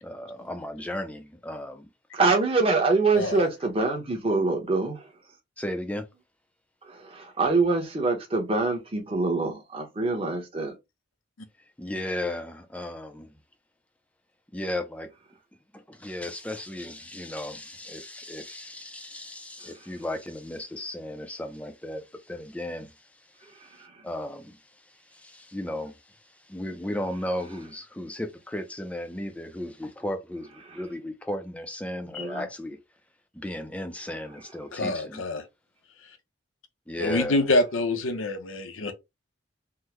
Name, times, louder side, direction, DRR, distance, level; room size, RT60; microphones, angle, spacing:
voice 1, 0.0-1.9 5.6-6.1 11.8-13.3 14.5-15.1 15.7-32.8 33.3-35.2 36.9-37.5, left 1 dB, 5° left, 0.4 m, -35 dB
voice 2, 2.1-5.1 6.8-10.7 23.4-24.1 30.7-30.8 32.1-32.4, right 3 dB, 25° right, 0.9 m, -25 dB
voice 3, 34.7-35.4 37.0-38.9, left 2 dB, 80° left, 0.7 m, -26 dB
3.6 x 2.1 x 3.0 m
head